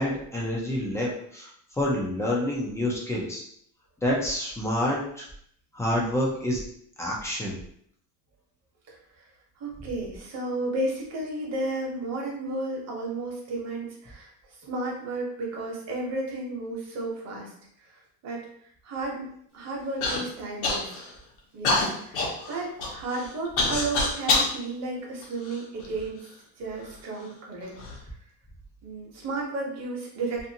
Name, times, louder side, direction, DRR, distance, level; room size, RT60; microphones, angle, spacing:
voice 1, 0.0-1.5 1.8-3.4 4.0-5.3 5.7-6.6 7.0-7.5, left 1 dB, 5° left, -4 dB, 0.3 m, -28 dB
voice 2, 9.6-17.5 18.2-18.5 18.8-19.3 19.5-20.9 21.5-26.2 26.6-27.8 28.8-30.5, right 2 dB, 35° right, -2 dB, 0.9 m, -33 dB
Human voice / Cough, 20.0-20.2 20.6-21.1 21.6-24.5 25.2-26.1 26.8-26.9 27.6-28.0, left 3 dB, 85° left, 1.0 m, -26 dB
2.6 x 2.4 x 2.7 m, 0.66 s
cardioid pair, 145°, 43 cm